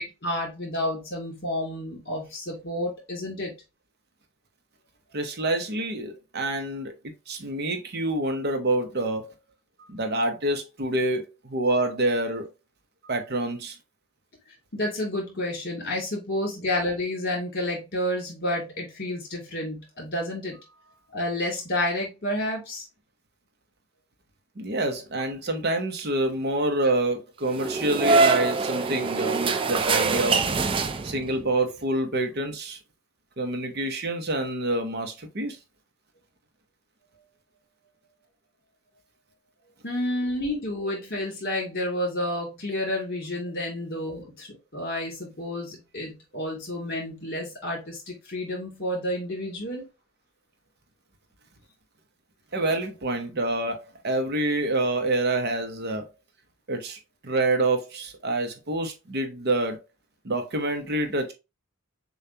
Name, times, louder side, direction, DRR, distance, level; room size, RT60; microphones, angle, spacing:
voice 1, 0.0-3.5 14.7-20.6 21.1-22.8 39.8-49.9, left 1 dB, 50° left, 2.6 m, -30 dB
voice 2, 5.1-6.9 7.3-9.3 9.9-12.5 13.0-13.8 24.6-30.4 31.0-32.8 33.4-35.6 52.5-56.1 56.7-57.0 57.2-59.8 60.2-61.3, right 2 dB, 50° right, 0.8 m, -27 dB
sound 1, 27.5-31.4, right 4 dB, 25° right, 0.3 m, -24 dB
6.7 x 2.4 x 2.8 m
head